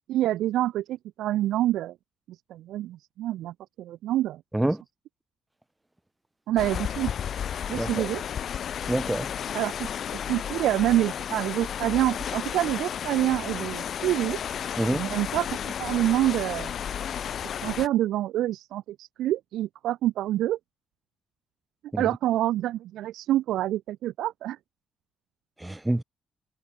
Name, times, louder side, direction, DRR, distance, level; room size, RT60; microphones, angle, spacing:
voice 1, 0.1-1.9 2.5-4.4 6.5-7.1 7.7-8.2 9.5-9.9 10.3-14.4 14.9-16.7 17.6-20.6 22.0-24.6, right 13 dB, 85° right, 1.1 m, -27 dB
sound 1, 6.6-17.9, left 8 dB, 65° left, 0.7 m, -33 dB
voice 2, 8.9-9.3 14.8-15.0 21.9-22.0 25.6-26.0, right 1 dB, 10° right, 1.0 m, -26 dB
cardioid pair, 75°, 0 cm